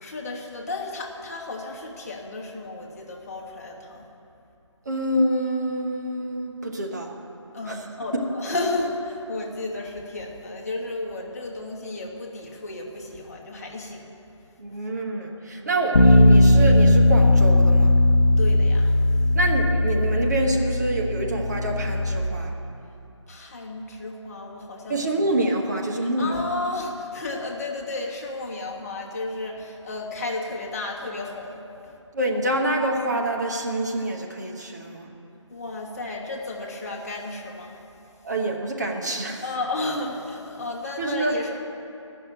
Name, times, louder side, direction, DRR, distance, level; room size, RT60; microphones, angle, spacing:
voice 1, 0.0-4.1 7.5-14.1 15.6-15.8 18.4-18.9 23.3-25.1 26.2-31.9 35.5-37.8 39.4-41.6, left 2 dB, 30° left, -1 dB, 1.4 m, -33 dB
voice 2, 4.8-7.1 7.7-7.8 8.1-8.2 14.6-18.0 19.3-22.5 24.9-26.4 32.1-35.1 38.2-39.5 41.0-41.3, right 1 dB, 35° right, 0 dB, 1.1 m, -26 dB
Bass guitar, 15.9-22.2, left 1 dB, 55° left, 0.8 m, -18 dB
14.5 x 6.6 x 8.9 m, 2.7 s
figure-of-eight pair, 160°, 16 cm